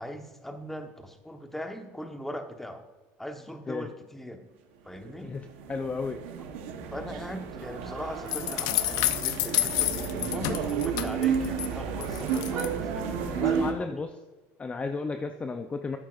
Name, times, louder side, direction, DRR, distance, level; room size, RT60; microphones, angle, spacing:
voice 1, 0.0-2.8 3.2-4.4 4.8-5.3 6.9-13.9, equal, 5° left, 6 dB, 1.1 m, -40 dB
sound 1, 5.0-13.7, right 7 dB, 85° right, 1.0 m, -32 dB
voice 2, 5.2-6.2 13.2-14.1 14.6-16.0, left 4 dB, 20° left, 7 dB, 0.6 m, -33 dB
sound 2, 8.3-11.7 12.0-12.7, left 15 dB, 75° left, 0.6 m, -29 dB
12.0 x 9.0 x 2.5 m, 1.2 s
supercardioid pair, 105°, 6 cm